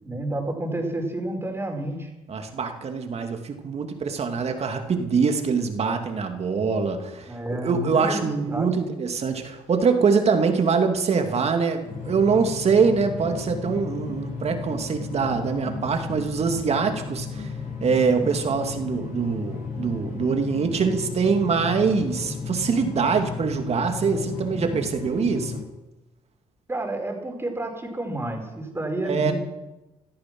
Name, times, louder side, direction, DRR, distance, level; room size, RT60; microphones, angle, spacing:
voice 1, 0.0-2.1 7.3-8.7 26.7-29.4, right 1 dB, 15° right, 2 dB, 4.8 m, -30 dB
voice 2, 2.3-17.5 17.8-25.6 29.0-29.4, right 5 dB, 45° right, 5 dB, 2.4 m, -24 dB
sound 1, 11.9-25.6, left 5 dB, 65° left, 7.4 m, -34 dB
17.0 x 13.0 x 6.1 m, 1.0 s
supercardioid pair, 70°, 15 cm